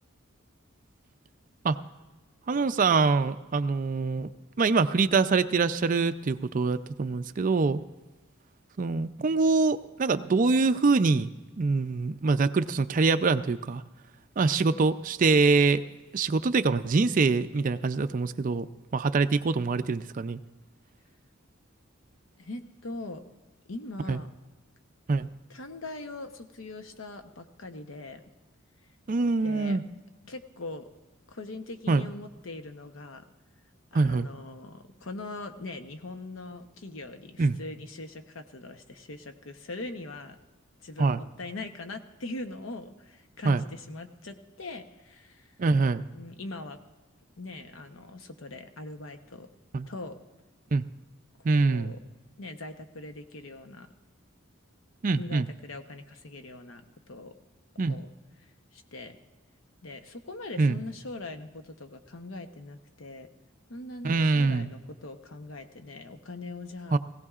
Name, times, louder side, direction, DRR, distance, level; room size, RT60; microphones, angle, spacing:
voice 1, 2.5-4.3 4.6-7.8 8.8-11.3 11.6-13.8 14.4-15.8 16.1-18.7 18.9-20.4 24.1-24.2 25.1-25.3 29.1-29.8 31.9-32.1 33.9-34.3 37.4-37.6 41.0-41.2 43.5-43.6 45.6-46.0 49.7-49.9 50.7-50.8 51.4-51.9 55.0-55.5 57.8-58.0 60.6-60.8 64.0-64.7 66.9-67.0, right 4 dB, 40° right, 10 dB, 0.4 m, -24 dB
voice 2, 22.4-23.2 23.7-24.3 25.5-28.2 29.4-29.8 30.3-30.9 31.3-33.3 33.9-40.4 40.8-45.5 46.1-46.8 47.4-49.5 49.9-50.2 51.4-52.0 52.4-53.9 55.2-57.3 57.9-58.1 58.7-59.2 59.8-63.3 63.7-67.0, left 2 dB, 75° left, 7 dB, 0.9 m, -41 dB
19.5 x 16.0 x 2.4 m, 1.2 s
head